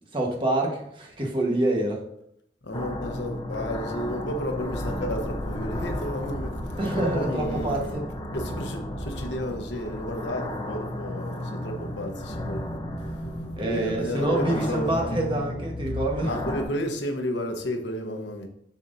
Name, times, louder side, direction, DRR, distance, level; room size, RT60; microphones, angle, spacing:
voice 1, 0.1-2.0 6.8-8.1 13.6-16.3, right 1 dB, 30° right, 0 dB, 1.3 m, -26 dB
voice 2, 2.6-6.6 6.9-8.0 8.3-12.7 13.6-15.2 16.3-18.5, equal, 90° left, 4 dB, 1.0 m, -32 dB
sound 1, 2.7-16.6, left 1 dB, 25° left, 0.7 m, -33 dB
7.1 x 5.9 x 2.7 m, 0.71 s
head